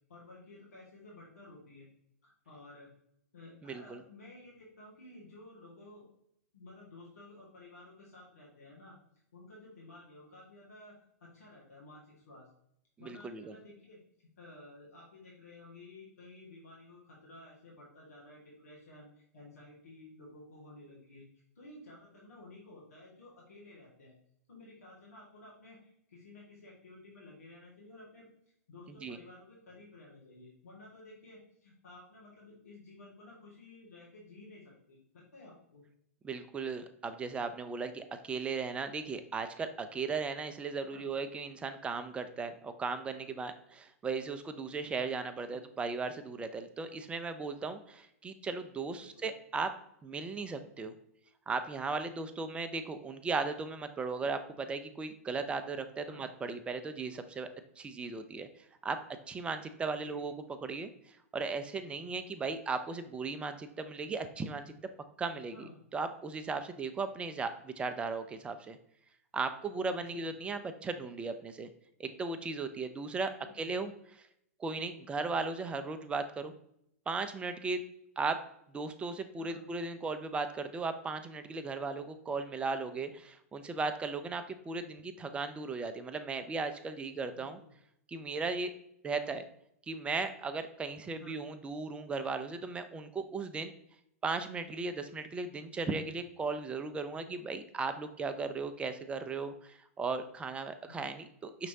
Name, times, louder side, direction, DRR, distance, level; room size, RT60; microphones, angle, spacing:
voice 1, 0.1-1.9 2.2-2.9 3.3-6.1 6.5-9.0 9.3-12.5 13.0-14.0 14.4-21.2 21.6-24.1 24.5-28.3 28.7-35.8 40.9-41.1 45.4-45.6 49.0-49.3 56.0-56.3 60.0-60.2 65.5-65.8 70.0-70.3 73.4-73.7 79.4-79.7 87.3-87.7 91.2-91.4 97.1-97.3 100.8-101.1, left 2 dB, 80° left, -5 dB, 1.8 m, -53 dB
voice 2, 3.6-4.0 13.0-13.5 28.9-29.2 36.2-49.7 50.0-50.9 51.5-57.5 57.8-58.5 58.8-59.0 59.3-60.3 60.6-64.7 65.2-68.8 69.3-71.7 72.0-73.3 73.6-74.3 74.6-76.5 77.1-77.8 78.2-78.4 78.7-87.6 88.1-88.7 89.0-89.5 89.9-93.7 94.2-101.7, right 4 dB, 15° right, 9 dB, 0.4 m, -37 dB
5.9 x 3.0 x 2.7 m, 0.75 s
hypercardioid pair, 120°, 8 cm